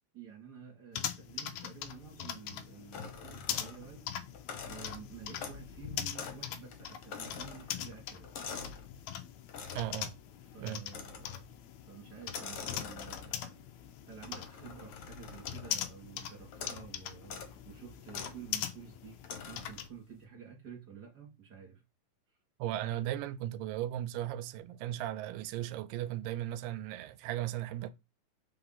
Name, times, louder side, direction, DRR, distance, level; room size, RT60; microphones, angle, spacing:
voice 1, 0.1-4.4 4.6-8.3 10.4-11.5 11.9-13.6 14.1-19.2 19.5-21.8 22.3-22.4, right 7 dB, 35° right, 2.1 m, -51 dB
sound 1, 0.9-19.9, left 11 dB, 90° left, 1.6 m, -42 dB
sound 2, 2.9-4.0 4.3-5.8 6.2-6.5 6.7-8.9 9.5-10.0 10.9-11.4 12.2-13.5 14.2-15.9 16.5-16.9 17.2-17.5 18.1-18.4 19.2-19.8, left 6 dB, 65° left, 1.4 m, -45 dB
voice 2, 9.8-10.2 10.6-10.8 22.6-27.9, right 12 dB, 80° right, 2.1 m, -36 dB
5.1 x 3.5 x 5.6 m
omnidirectional pair, 4.0 m